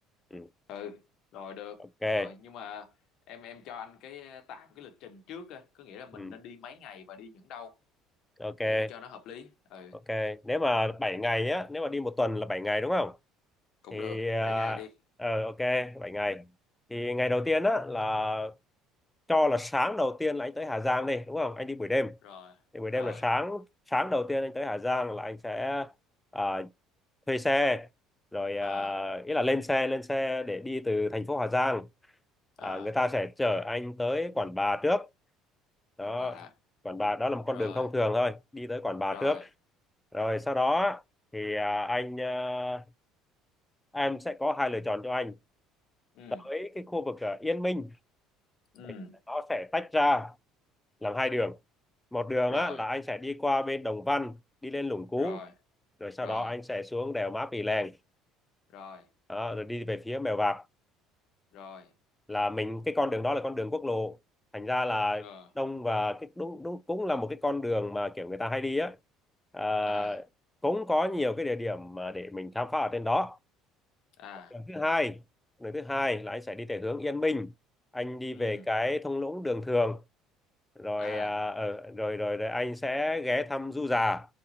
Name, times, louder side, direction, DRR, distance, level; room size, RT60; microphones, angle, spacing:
voice 1, 0.7-1.0 1.3-1.9 2.1-3.0 3.3-7.8 8.6-10.0 13.8-14.9 22.2-22.6 22.9-23.2 28.6-29.0 32.6-32.9 36.0-36.5 37.5-37.9 39.1-39.4 46.1-46.5 48.7-49.2 52.5-52.8 55.2-55.5 56.2-56.5 58.7-59.1 61.5-61.9 65.2-65.5 69.9-70.2 74.2-74.6 78.3-78.7 81.0-81.4, left 7 dB, 55° left, 1.0 m, -45 dB
voice 2, 2.0-2.3 6.2-6.3 8.4-8.9 10.1-13.2 13.9-14.8 15.2-16.4 16.9-18.5 19.3-22.2 22.7-25.9 26.3-26.7 27.3-27.9 28.3-31.9 32.6-35.1 36.0-36.4 36.8-39.4 40.1-41.0 41.3-42.8 43.9-45.4 46.4-47.9 49.3-50.3 51.0-51.6 52.1-55.4 56.0-58.0 59.3-60.6 62.3-64.2 64.5-65.3 65.6-69.0 69.5-70.2 70.6-73.4 74.5-75.2 75.6-77.5 77.9-80.0 80.8-84.3, left 2 dB, 10° left, 0.3 m, -30 dB
4.6 x 2.4 x 3.0 m
figure-of-eight pair, 60°, 0 cm